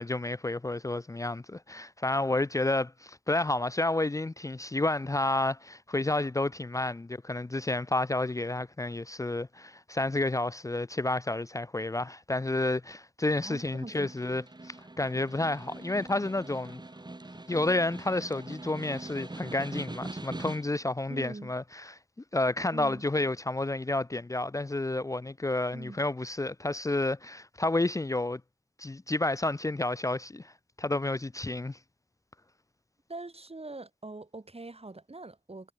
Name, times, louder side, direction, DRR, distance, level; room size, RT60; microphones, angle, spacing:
voice 1, 0.0-16.8 17.5-21.9 22.3-28.4 28.8-30.5 30.8-31.8, left 2 dB, 30° left, 0.4 m, -30 dB
Snare drum, 13.4-20.9, right 2 dB, 40° right, 1.1 m, -43 dB
voice 2, 13.4-14.1 21.1-21.5 22.7-23.1 25.7-26.0 33.1-35.7, right 2 dB, 65° right, 1.9 m, -43 dB
wide cardioid pair, 50°, 11 cm